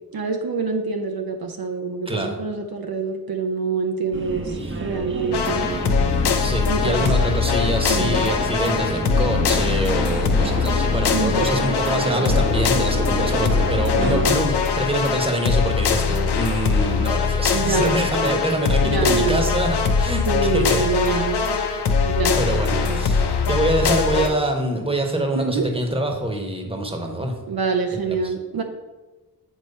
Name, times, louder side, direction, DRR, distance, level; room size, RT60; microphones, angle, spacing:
voice 1, 0.1-5.8 6.7-7.1 7.9-8.1 11.1-11.5 13.9-14.4 17.5-18.1 18.8-19.4 20.3-21.5 22.0-23.0 25.4-25.7 27.5-28.6, right 5 dB, 65° right, 4 dB, 0.8 m, -26 dB
voice 2, 2.1-2.4 6.4-20.2 20.5-21.2 22.3-27.3 27.9-28.3, right 1 dB, 15° right, 3 dB, 1.2 m, -25 dB
Subway metro underground, 4.1-14.4, right 1 dB, 30° right, 0.9 m, -29 dB
sound 1, 5.3-24.3, left 5 dB, 80° left, 0.7 m, -22 dB
8.2 x 3.0 x 5.4 m, 1.2 s
cardioid pair, 55°, 39 cm